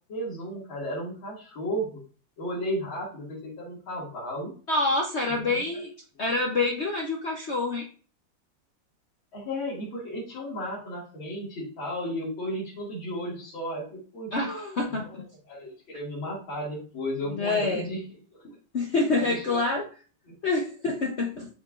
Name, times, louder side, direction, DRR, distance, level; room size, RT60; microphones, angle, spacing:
voice 1, 0.1-2.0 2.4-4.5 5.3-5.8 9.3-14.3 15.0-18.0 19.1-19.6 20.3-20.4, equal, 80° left, -8 dB, 2.9 m, -34 dB
voice 2, 4.7-5.9 6.2-7.9 14.3-15.3 17.3-17.8 18.7-19.8 20.4-21.5, left 3 dB, 55° left, 1 dB, 0.7 m, -27 dB
7.3 x 5.7 x 2.4 m, 0.39 s
omnidirectional pair, 2.1 m